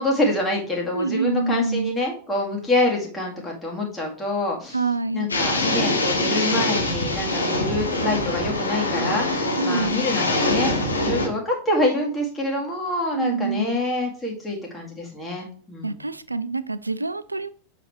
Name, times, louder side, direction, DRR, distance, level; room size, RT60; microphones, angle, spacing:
voice 1, 0.0-4.8 5.1-16.0, left 1 dB, 10° left, -1 dB, 2.0 m, -26 dB
voice 2, 0.9-2.0 4.7-5.3 9.6-10.0 13.2-13.8 15.8-17.5, right 3 dB, 80° right, 15 dB, 0.3 m, -26 dB
sound 1, 5.3-11.3, left 2 dB, 80° left, 1.4 m, -24 dB
7.6 x 4.2 x 3.1 m, 0.44 s
figure-of-eight pair, 90°, 0 cm